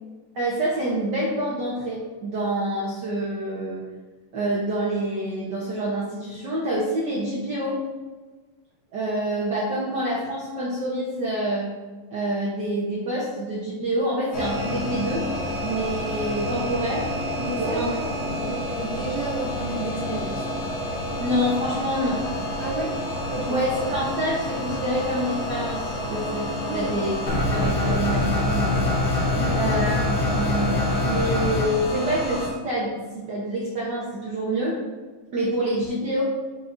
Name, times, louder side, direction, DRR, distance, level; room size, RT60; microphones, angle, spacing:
voice 1, 0.3-3.8 4.3-7.8 8.9-11.7 12.1-15.3 15.6-17.1 17.5-18.0 18.3-18.6 21.2-22.2 23.5-28.7 29.5-34.8 35.3-36.2, right 1 dB, 80° right, -6 dB, 0.9 m, -27 dB
sound 1, 14.3-32.5, left 1 dB, 55° left, 2.3 m, -30 dB
voice 2, 17.4-17.8 18.2-20.5 22.6-22.9 23.3-23.6 26.6-26.9 29.3-29.8, right 2 dB, 45° right, -7 dB, 2.5 m, -32 dB
sound 2, 27.3-31.7, left 2 dB, 85° left, 2.5 m, -24 dB
6.8 x 5.8 x 2.6 m, 1.3 s
omnidirectional pair, 3.4 m